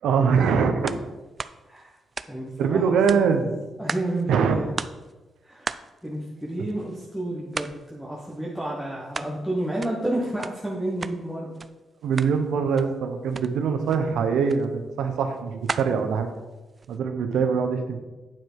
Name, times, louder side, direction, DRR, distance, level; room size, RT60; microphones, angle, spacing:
voice 1, 0.0-0.9 2.6-3.5 4.3-4.5 6.6-6.7 12.0-16.3 16.9-18.1, right 6 dB, 85° right, 6 dB, 0.9 m, -23 dB
sound 1, 0.9-1.1 1.4-2.7 3.1-4.2 4.5-4.6 4.8-5.1 5.7-7.1 7.5-7.9 8.2-9.4 9.6-11.2 11.5-11.7 12.0-12.4 12.7-13.0 13.3-13.5 13.9-14.0 14.5-14.7 15.1-17.0, right 4 dB, 30° right, 0.3 m, -36 dB
voice 2, 2.3-3.0 3.8-4.7 5.4-5.7 6.0-11.5, right 1 dB, ahead, -4 dB, 1.3 m, -30 dB
9.1 x 4.8 x 4.6 m, 1.2 s
cardioid pair, 105°, 0 cm